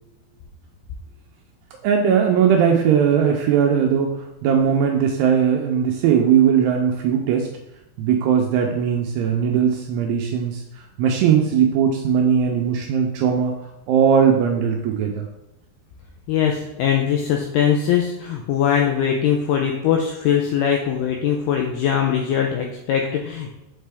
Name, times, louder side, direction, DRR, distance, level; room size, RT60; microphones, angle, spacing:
voice 1, 1.8-7.5 8.0-13.6 13.9-15.3, right 7 dB, 85° right, 3 dB, 2.4 m, -19 dB
voice 2, 16.3-23.5, left 8 dB, 85° left, 1 dB, 2.2 m, -21 dB
7.3 x 4.4 x 3.4 m, 0.92 s
omnidirectional pair, 5.2 m